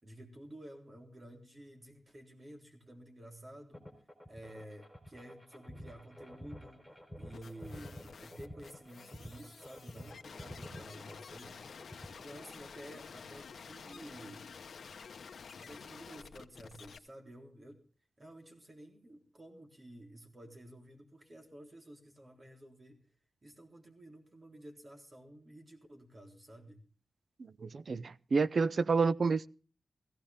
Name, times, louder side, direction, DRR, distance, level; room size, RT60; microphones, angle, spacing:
voice 1, 0.0-3.8 4.3-6.8 7.2-14.5 15.4-17.8 18.2-23.0 23.4-26.8, right 1 dB, 35° right, 3.7 m, -52 dB
sound 1, 3.7-12.6, equal, 5° right, 4.0 m, -50 dB
sound 2, 7.3-17.0, left 6 dB, 80° left, 1.1 m, -50 dB
voice 2, 27.6-29.5, right 4 dB, 55° right, 0.6 m, -29 dB
16.5 x 16.0 x 3.5 m
wide cardioid pair, 100°, 0 cm